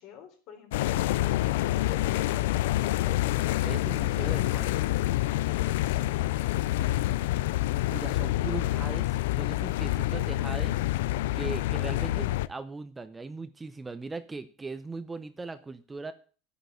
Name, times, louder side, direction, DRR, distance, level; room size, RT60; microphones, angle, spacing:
voice 1, 0.0-3.2 5.6-7.2, left 8 dB, 55° left, 3 dB, 3.9 m, -48 dB
sound 1, 0.7-12.5, left 16 dB, 85° left, 0.5 m, -27 dB
voice 2, 3.6-4.7 7.9-11.0 11.3-16.1, right 3 dB, 15° right, 12 dB, 0.7 m, -39 dB
9.0 x 8.3 x 7.8 m, 0.38 s
supercardioid pair, 130°, 0 cm